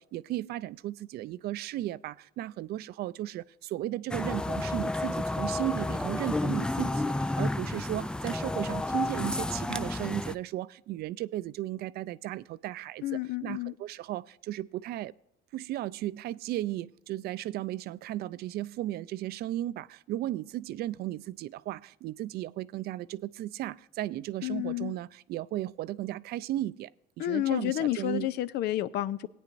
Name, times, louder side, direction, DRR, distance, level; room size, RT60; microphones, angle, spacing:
voice 1, 0.0-15.1 15.5-26.9 27.2-28.3, right 14 dB, 70° right, 0.4 m, -35 dB
sound 1, 4.1-10.3, left 2 dB, 5° left, 0.3 m, -31 dB
voice 2, 13.0-13.7 24.4-24.9 27.2-29.3, left 14 dB, 75° left, 0.5 m, -30 dB
18.0 x 9.4 x 2.6 m
cardioid pair, 110°, 17 cm